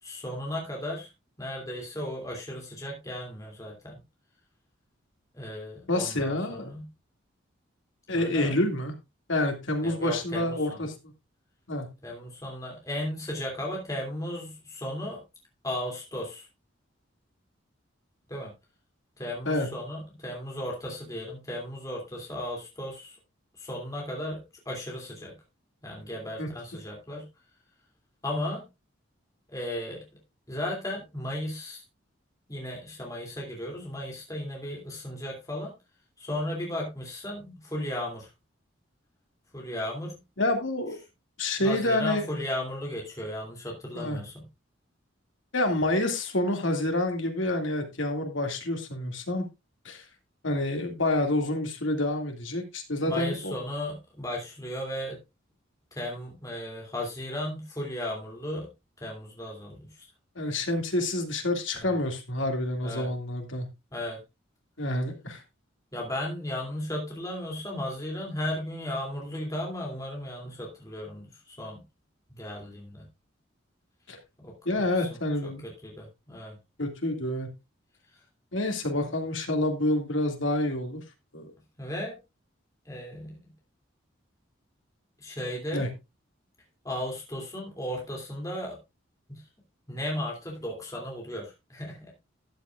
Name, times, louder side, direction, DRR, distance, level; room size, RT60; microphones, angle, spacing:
voice 1, 0.0-1.1 1.4-4.0 5.3-6.9 8.1-8.5 9.8-10.8 12.0-15.2 15.6-16.5 18.3-18.5 19.2-23.2 23.6-25.3 25.8-27.3 28.2-28.7 29.5-30.0 30.5-31.8 32.5-35.7 36.2-38.3 39.5-40.2 41.6-44.4 53.0-55.2 55.9-58.7 59.0-60.1 61.8-62.0 62.8-63.1 63.9-64.2 65.9-71.8 72.4-73.1 74.4-76.6 78.1-78.2 81.8-82.2 82.8-83.5 85.2-85.9 86.8-88.8 89.3-89.4 89.9-92.1, left 1 dB, 15° left, -1 dB, 2.8 m, -35 dB
voice 2, 5.9-6.7 8.1-8.9 9.3-11.1 11.7-11.9 19.5-19.7 26.4-26.5 40.4-41.0 41.4-42.2 44.0-44.2 45.5-49.4 49.8-50.0 50.4-53.5 60.4-63.7 64.8-65.4 74.1-74.2 74.7-75.7 76.8-77.5 78.5-81.0 81.3-81.5 85.7-85.9, left 1 dB, 70° left, 4 dB, 2.3 m, -28 dB
13.0 x 9.3 x 2.4 m, 0.24 s
head